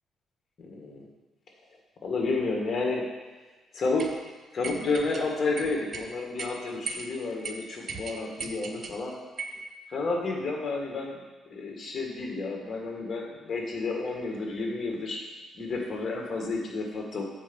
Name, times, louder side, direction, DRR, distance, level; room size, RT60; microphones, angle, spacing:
voice 1, 0.6-1.1 2.0-3.1 3.7-4.1 4.5-9.1 9.9-11.2 11.5-15.2 15.5-17.4, left 3 dB, 45° left, 0 dB, 1.8 m, -31 dB
sound 1, 4.0-4.1 4.6-5.2 5.6-6.1 6.4-6.5 6.9-7.1 7.4-7.5 7.9-9.0 9.4-9.6, right 4 dB, 45° right, 0.8 m, -37 dB
7.9 x 4.5 x 5.4 m, 1.3 s
cardioid pair, 90°, 0 cm